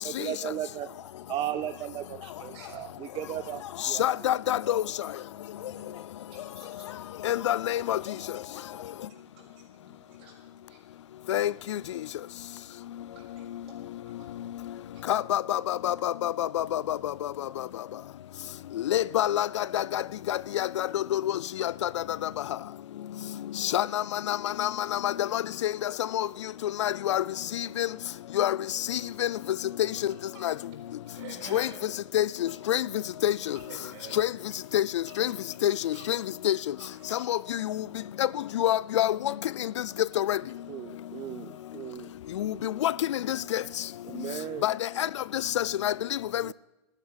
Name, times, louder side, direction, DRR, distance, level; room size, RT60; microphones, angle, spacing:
voice 1, 0.0-0.9 1.3-4.0 40.7-42.1 42.4-42.6 44.0-44.7 46.4-46.5, right 12 dB, 35° right, 0.7 m, -36 dB
voice 2, 2.5-3.0 4.0-4.2 5.5-7.2 8.7-10.8 12.3-12.4 13.1-14.5 14.9-15.1 30.3-30.6 31.1-31.9 32.5-32.6 33.5-34.3 35.1-35.5 35.9-36.1 36.8-37.3, right 5 dB, 60° right, 6.4 m, -51 dB
voice 3, 4.0-4.8 7.3-8.0 11.3-11.5 15.1-16.8 18.9-20.0 20.3-21.2 21.8-21.9 23.7-24.0 24.3-24.7 25.0-25.7 26.1-26.3 26.8-27.2 27.8-27.9 28.4-28.6 30.4-30.5 31.5-31.7 32.1-32.2 32.7-32.8 33.2-33.3 34.2-34.3 34.7-34.8 35.2-35.3 35.6-36.2 36.4-36.5 37.3-37.4 38.6-39.1 40.2-40.4 42.4-42.5 42.8-42.9 44.6-45.1 45.6-45.9 46.3-46.4, left 12 dB, 80° left, 0.5 m, -26 dB
14.0 x 9.8 x 9.2 m
hypercardioid pair, 115°, 15 cm